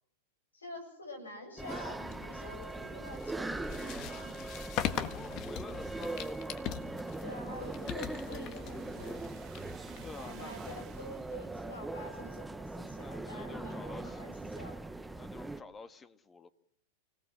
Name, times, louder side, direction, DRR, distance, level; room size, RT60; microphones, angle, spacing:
voice 1, 0.5-4.5 7.2-9.3 10.2-14.8, left 1 dB, 90° left, 6 dB, 7.8 m, -47 dB
sound 1, 1.6-15.6, right 2 dB, 5° right, 1.0 m, -41 dB
sound 2, 2.0-10.7, left 10 dB, 45° left, 1.5 m, -41 dB
voice 2, 4.2-6.8 10.0-10.7 13.0-14.2 15.2-16.5, left 4 dB, 20° left, 11 dB, 1.5 m, -50 dB
sound 3, 6.8-11.6, right 13 dB, 40° right, 1.5 m, -57 dB
29.5 x 18.0 x 6.3 m, 0.64 s
hypercardioid pair, 100°, 0 cm